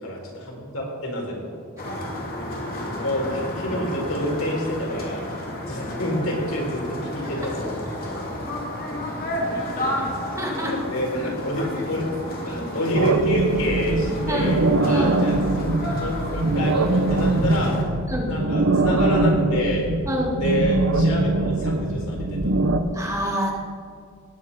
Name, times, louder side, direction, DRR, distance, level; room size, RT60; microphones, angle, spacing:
voice 1, 0.0-2.2 3.0-5.2 5.6-7.7 10.6-12.1 12.4-14.6 14.9-15.6 16.0-17.8 18.3-19.9 20.4-22.6, equal, 85° left, -2 dB, 4.4 m, -27 dB
sound 1, 1.8-17.8, left 1 dB, 45° left, 2.7 m, -31 dB
voice 2, 10.4-10.7 14.3-14.5 14.9-15.2 18.1-18.4 20.1-20.4 22.9-23.5, equal, 15° right, -1 dB, 2.0 m, -27 dB
sound 2, 12.9-22.8, right 2 dB, 75° right, 0.9 m, -22 dB
18.5 x 8.9 x 5.6 m, 2.1 s
head